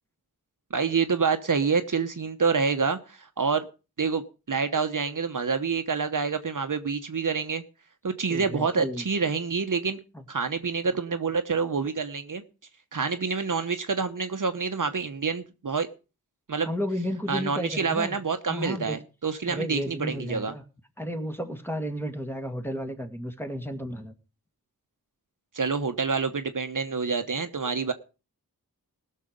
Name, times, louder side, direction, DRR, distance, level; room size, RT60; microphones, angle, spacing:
voice 1, 0.7-3.7 4.0-7.6 8.0-10.0 10.3-12.4 12.9-15.9 16.5-16.7 17.3-20.5 25.5-27.9, right 5 dB, 55° right, 1.0 m, -27 dB
voice 2, 8.3-9.1 16.6-18.2 18.5-19.0 19.5-20.6 21.0-24.1, equal, 5° left, 2.0 m, -32 dB
19.5 x 6.6 x 5.1 m
wide cardioid pair, 70°, 38 cm